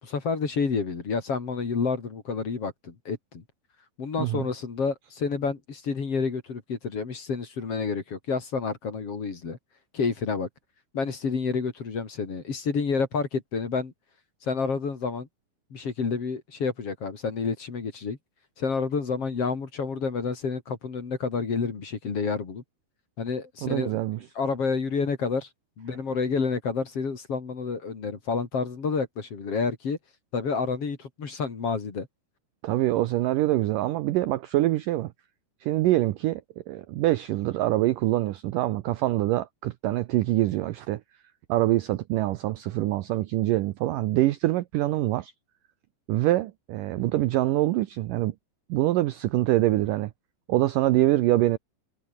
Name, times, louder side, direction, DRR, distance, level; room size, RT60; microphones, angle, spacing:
voice 1, 0.0-3.4 4.0-9.6 9.9-10.5 10.9-13.9 14.4-15.3 15.7-18.2 18.6-22.6 23.2-24.0 24.4-25.5 25.8-30.0 30.3-32.1, left 5 dB, 40° left, 3.7 m, -29 dB
voice 2, 23.6-24.2 32.6-35.1 35.6-36.4 36.7-41.0 41.5-45.3 46.1-48.3 48.7-50.1 50.5-51.6, right 16 dB, 75° right, 2.0 m, -24 dB
omnidirectional pair, 4.7 m